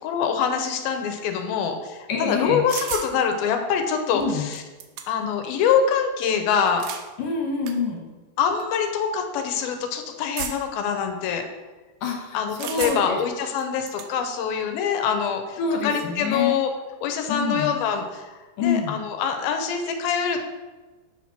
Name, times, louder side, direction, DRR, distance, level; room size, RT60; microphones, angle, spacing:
voice 1, 0.0-4.6 5.1-6.9 8.4-11.5 12.3-16.7 17.0-20.4, left 7 dB, 85° left, 6 dB, 2.6 m, -25 dB
voice 2, 2.1-2.6 4.1-4.4 7.2-8.1 12.0-13.2 15.6-16.6 17.3-17.7 18.6-18.9, left 4 dB, 70° left, 1 dB, 2.5 m, -26 dB
sound 1, 2.7-3.1 4.2-4.3 4.5-5.3 6.5-7.1 7.7-7.8 8.6-8.8 10.4-10.8 12.6-13.2 13.6-14.1, right 9 dB, 80° right, 1.7 m, -33 dB
7.9 x 4.3 x 5.9 m, 1.2 s
omnidirectional pair, 4.3 m